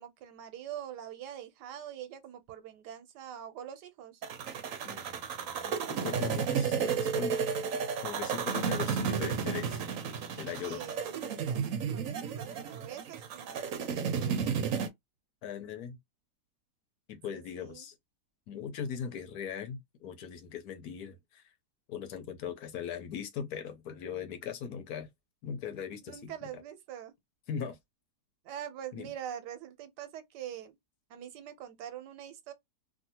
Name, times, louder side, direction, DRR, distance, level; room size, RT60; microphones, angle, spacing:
voice 1, 0.0-4.2 10.5-12.1 12.4-14.8 17.3-17.9 26.1-27.1 28.4-30.8 31.1-32.5, right 10 dB, 90° right, 1.3 m, -44 dB
sound 1, 4.2-14.9, right 7 dB, 65° right, 0.9 m, -32 dB
voice 2, 4.8-7.4 8.0-9.8 10.4-10.9 15.4-16.0 17.1-17.9 18.5-21.4 21.9-25.1 25.4-26.6 27.5-27.8 28.9-29.1, left 8 dB, 70° left, 1.2 m, -39 dB
2.7 x 2.7 x 2.7 m
omnidirectional pair, 1.8 m